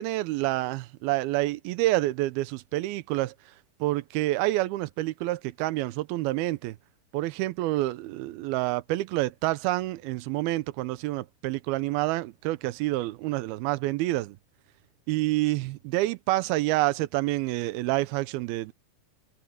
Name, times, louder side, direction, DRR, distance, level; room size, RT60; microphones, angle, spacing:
voice 1, 0.0-3.3 3.8-6.8 7.1-14.4 15.1-18.7, right 18 dB, 85° right, 2.6 m, -28 dB
omnidirectional pair, 4.3 m